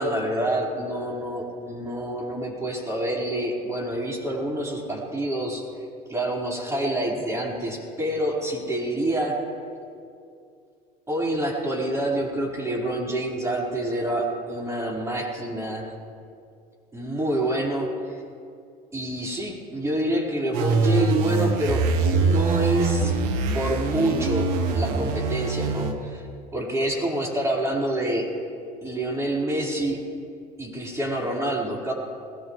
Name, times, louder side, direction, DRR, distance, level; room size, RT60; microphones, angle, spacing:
voice 1, 0.0-5.6 6.1-9.4 11.1-15.9 16.9-18.2 18.9-23.2 23.5-26.3 26.5-28.3 28.8-30.0 30.6-31.9, right 1 dB, 15° right, -4 dB, 5.0 m, -27 dB
sound 1, 20.5-25.9, right 4 dB, 75° right, 1.4 m, -23 dB
20.5 x 18.5 x 3.3 m, 2.4 s
hypercardioid pair, 75°, 20 cm